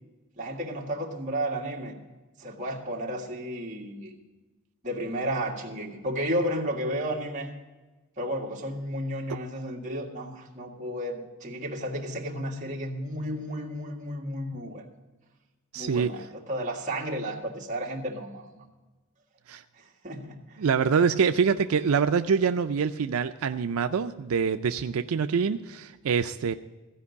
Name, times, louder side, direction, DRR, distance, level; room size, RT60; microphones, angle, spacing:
voice 1, 0.4-1.9 2.4-4.2 4.8-7.5 8.2-14.8 15.8-18.7 19.8-20.7, equal, 35° right, -2 dB, 1.8 m, -33 dB
voice 2, 15.7-16.1 19.5-19.6 20.6-26.5, right 6 dB, 90° right, 9 dB, 0.4 m, -25 dB
15.5 x 5.3 x 8.2 m, 1.2 s
head